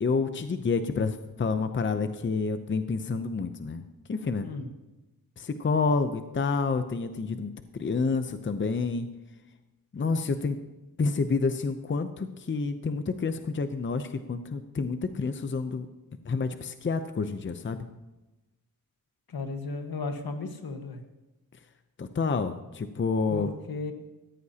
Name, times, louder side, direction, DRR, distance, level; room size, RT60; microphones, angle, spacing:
voice 1, 0.0-3.8 4.1-4.5 5.4-7.5 7.8-9.1 9.9-10.6 11.0-15.9 16.2-17.9 22.0-23.5, left 4 dB, 35° left, 9 dB, 0.6 m, -28 dB
voice 2, 19.3-21.0 23.3-23.9, left 3 dB, 75° left, 5 dB, 1.5 m, -35 dB
18.0 x 14.5 x 2.9 m, 1.0 s
wide cardioid pair, 150°, 37 cm